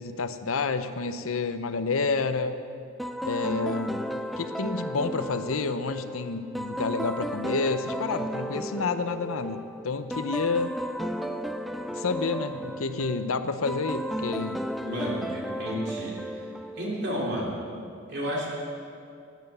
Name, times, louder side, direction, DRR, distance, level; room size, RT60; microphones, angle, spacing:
voice 1, 0.0-2.6 3.2-10.7 11.9-14.6, left 4 dB, 85° left, 10 dB, 0.7 m, -29 dB
sound 1, 3.0-17.2, equal, ahead, 0.3 m, -34 dB
voice 2, 14.8-16.1 16.8-17.5 18.1-18.5, equal, 50° right, -3 dB, 3.2 m, -31 dB
12.0 x 9.4 x 7.9 m, 2.4 s
head